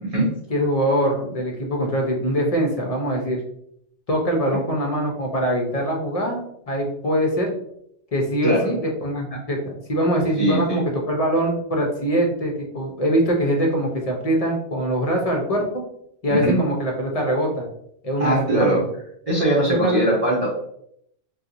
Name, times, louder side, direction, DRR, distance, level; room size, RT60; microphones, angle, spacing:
voice 1, 0.5-3.4 4.1-6.4 6.7-7.5 8.1-15.6 16.2-17.6 18.0-18.8 19.8-20.1, equal, 40° left, 0 dB, 0.7 m, -23 dB
voice 2, 10.4-10.8 16.3-16.6 18.2-18.8 19.3-20.5, right 1 dB, 35° right, -5 dB, 0.8 m, -20 dB
4.3 x 2.3 x 2.6 m, 0.72 s
omnidirectional pair, 1.2 m